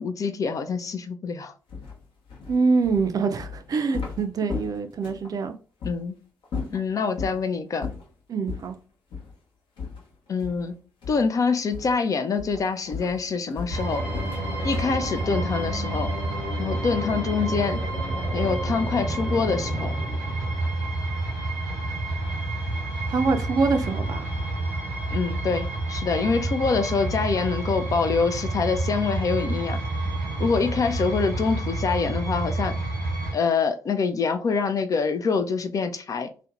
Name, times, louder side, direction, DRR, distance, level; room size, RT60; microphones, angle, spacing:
voice 1, 0.0-1.5 5.8-6.2 6.7-7.9 10.3-10.8 11.1-14.0 14.6-16.1 16.6-17.8 18.3-19.9 25.1-29.8 30.4-32.8 33.3-36.3, left 5 dB, 40° left, 0.3 m, -25 dB
sound 1, 1.7-5.3 5.8-6.0 6.4-7.4 7.8-8.1 8.5-8.7 9.1-9.3 9.8-10.7 11.0-11.4 11.7-12.0 12.4-16.3, left 5 dB, 65° left, 0.8 m, -36 dB
voice 2, 2.5-5.5 8.3-8.8 23.1-24.2, right 4 dB, 45° right, 0.4 m, -24 dB
sound 2, 13.6-21.1, left 1 dB, 10° left, 0.9 m, -36 dB
sound 3, 13.7-33.3, right 2 dB, 90° right, 0.7 m, -29 dB
2.5 x 2.1 x 2.4 m
hypercardioid pair, 40°, 9 cm